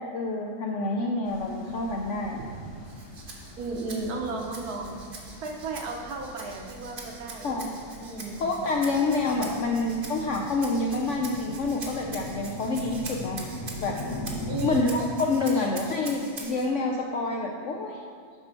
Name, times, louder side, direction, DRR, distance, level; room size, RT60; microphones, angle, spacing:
voice 1, 0.1-2.4 7.4-7.7 8.4-13.4 13.8-13.9 14.6-18.0, left 3 dB, 70° left, 0 dB, 0.7 m, -27 dB
sound 1, 1.3-14.9, left 1 dB, 30° left, 0.4 m, -41 dB
Rattle (instrument), 2.8-16.7, right 3 dB, 40° right, 0.9 m, -44 dB
voice 2, 3.6-4.9 5.4-7.6 8.0-8.4 14.5-15.0 15.4-15.7, right 3 dB, 65° right, 1 dB, 1.3 m, -34 dB
6.8 x 4.3 x 5.8 m, 2.1 s
omnidirectional pair, 1.8 m